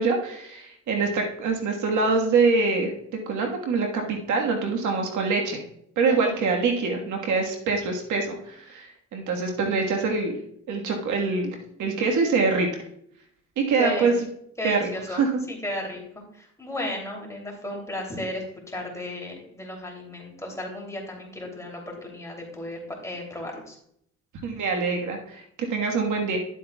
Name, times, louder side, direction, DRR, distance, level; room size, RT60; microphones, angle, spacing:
voice 1, 0.0-2.9 3.3-5.6 6.0-10.4 10.7-12.7 13.7-14.1 14.6-14.8 15.1-15.3 24.4-25.4 25.7-26.4, right 4 dB, 75° right, 1 dB, 1.5 m, -24 dB
voice 2, 6.1-6.5 13.8-14.2 14.6-23.8, left 1 dB, 10° left, -1 dB, 2.8 m, -34 dB
11.5 x 7.8 x 2.3 m, 0.71 s
cardioid pair, 90°, 30 cm